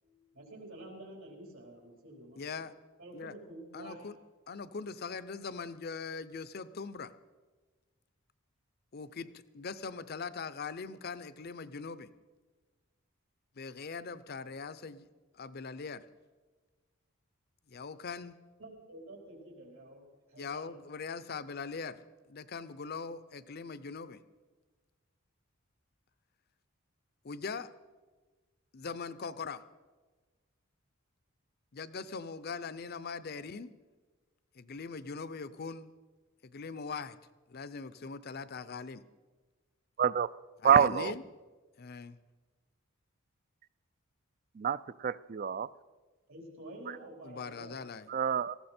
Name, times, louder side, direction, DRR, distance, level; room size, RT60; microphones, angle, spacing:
voice 1, 0.0-2.6 3.0-4.1 18.6-20.7 46.3-47.8, right 1 dB, 75° right, 0 dB, 4.2 m, -49 dB
voice 2, 2.4-2.7 3.1-3.3 3.7-4.1 4.5-7.1 8.9-12.1 13.6-15.1 15.3-16.0 17.7-18.4 20.4-22.0 22.3-24.2 27.2-27.7 28.7-29.6 31.7-33.7 34.6-35.9 36.4-37.2 37.5-39.0 40.6-41.2 41.8-42.2 47.2-48.1, left 5 dB, 50° left, 15 dB, 0.6 m, -41 dB
voice 3, 40.0-40.3 40.6-41.1 44.6-45.7 48.1-48.6, right 8 dB, 40° right, 18 dB, 0.4 m, -27 dB
18.5 x 14.5 x 4.3 m, 1.3 s
head